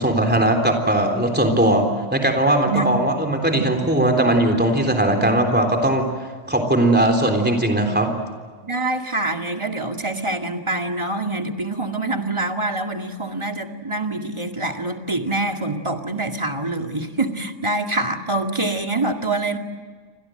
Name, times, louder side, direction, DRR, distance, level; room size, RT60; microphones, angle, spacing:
voice 1, 0.0-6.1 6.5-8.1, right 1 dB, 10° right, 3 dB, 3.6 m, -19 dB
voice 2, 2.7-3.0 3.6-3.7 8.6-19.6, right 2 dB, 25° right, 4 dB, 2.2 m, -25 dB
29.5 x 25.5 x 7.9 m, 1.5 s
omnidirectional pair, 1.2 m